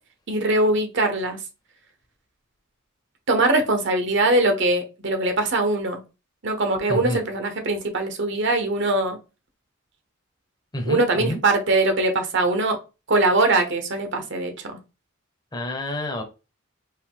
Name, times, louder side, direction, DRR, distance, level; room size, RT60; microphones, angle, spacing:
voice 1, 0.3-1.4 3.3-6.0 6.4-9.2 10.9-12.8 13.1-14.7, right 2 dB, 55° right, 0.9 m, -22 dB
voice 2, 6.9-7.2 10.7-11.4 15.5-16.2, left 1 dB, 20° left, 0.9 m, -28 dB
4.7 x 2.6 x 3.6 m
head